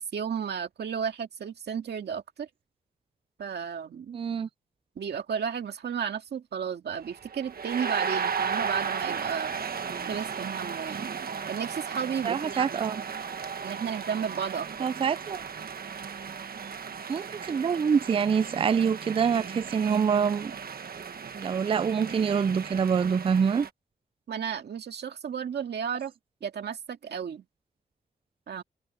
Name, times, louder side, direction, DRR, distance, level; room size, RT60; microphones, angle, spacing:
voice 1, 0.0-2.5 3.4-4.2 5.0-9.6 10.1-11.1 11.5-12.8 13.6-14.7 24.3-26.1 26.4-27.4 28.5-28.6, right 7 dB, 80° right, 2.1 m, -33 dB
voice 2, 4.1-4.5 12.2-13.0 14.8-15.4 17.1-20.6 21.3-23.7, right 6 dB, 35° right, 0.3 m, -26 dB
sound 1, 7.0-23.7, right 6 dB, 60° right, 1.5 m, -35 dB
cardioid pair, 80°, 17 cm